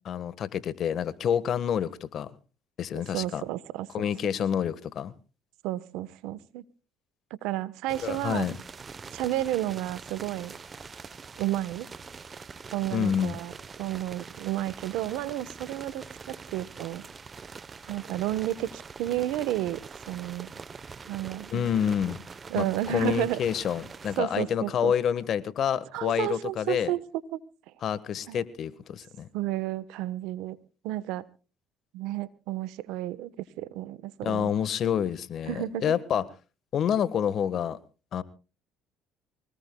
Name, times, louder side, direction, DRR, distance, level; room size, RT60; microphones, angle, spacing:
voice 1, 0.1-2.3 2.8-3.4 3.9-5.1 8.0-8.5 12.9-13.4 21.5-22.2 22.5-26.9 27.8-29.3 34.2-36.2 36.7-37.8 38.1-38.2, left 8 dB, 55° left, 15 dB, 1.4 m, -28 dB
voice 2, 3.1-3.9 5.6-6.6 7.3-8.5 9.1-10.5 11.4-11.9 12.7-13.5 13.8-17.0 17.9-19.8 20.1-20.5 21.1-21.7 22.5-23.4 24.2-24.9 25.9-27.0 27.3-27.4 28.3-28.4 29.3-30.6 30.8-31.3 31.9-34.5 35.5-35.9, right 14 dB, 80° right, 17 dB, 1.1 m, -31 dB
sound 1, 7.9-24.2, right 5 dB, 30° right, 0.9 m, -44 dB
25.0 x 18.5 x 2.3 m, 0.35 s
supercardioid pair, 85°, 0 cm